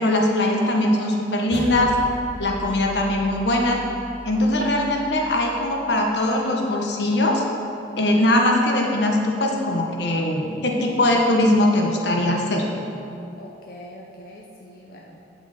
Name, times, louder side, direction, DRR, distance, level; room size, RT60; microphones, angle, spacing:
voice 1, 0.0-2.0 2.4-3.8 4.2-7.4 8.0-12.7, left 1 dB, 80° left, 0 dB, 1.1 m, -21 dB
sound 1, 1.5-6.1, equal, 5° left, 1.0 m, -38 dB
voice 2, 13.4-15.3, equal, 55° left, -2 dB, 0.7 m, -43 dB
8.6 x 7.8 x 4.2 m, 2.6 s
head